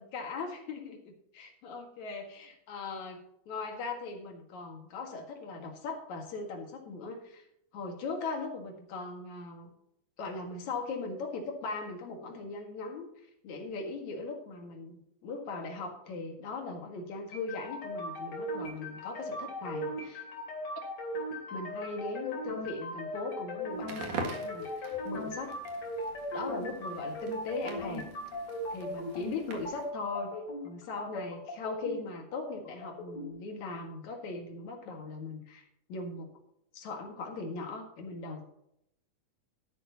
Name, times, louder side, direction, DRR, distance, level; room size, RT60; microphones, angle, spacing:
voice 1, 0.0-7.5 7.7-9.7 10.2-20.2 21.5-25.6 26.3-28.1 28.7-36.3 36.7-38.5, left 3 dB, 65° left, 3 dB, 3.1 m, -39 dB
sound 1, 17.3-33.3, left 1 dB, 45° left, 4.0 m, -38 dB
Crackle, 23.8-29.9, right 4 dB, 75° right, 3.4 m, -44 dB
12.5 x 11.0 x 2.9 m, 0.77 s
omnidirectional pair, 3.5 m